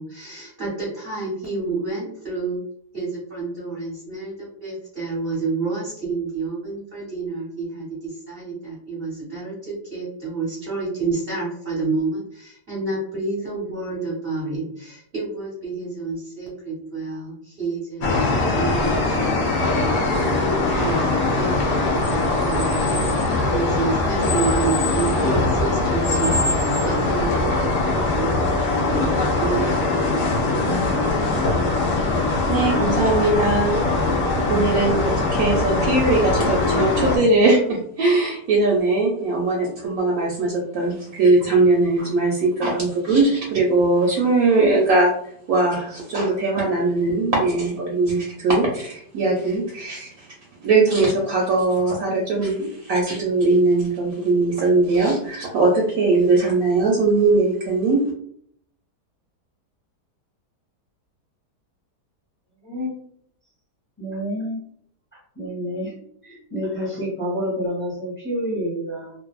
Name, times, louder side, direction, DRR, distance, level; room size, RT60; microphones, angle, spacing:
voice 1, 0.0-2.6 2.9-18.2 18.4-21.1 21.3-23.0 23.3-30.2, right 3 dB, 45° right, -6 dB, 0.8 m, -29 dB
sound 1, 18.0-37.2, left 2 dB, 65° left, 0.8 m, -21 dB
voice 2, 32.5-33.9 34.5-45.1 45.5-50.3 50.6-58.1, right 2 dB, 70° right, -2 dB, 0.9 m, -20 dB
voice 3, 64.0-64.6 65.1-66.0 66.2-69.1, equal, 10° left, -5 dB, 0.6 m, -28 dB
2.6 x 2.5 x 2.3 m, 0.65 s
omnidirectional pair, 1.8 m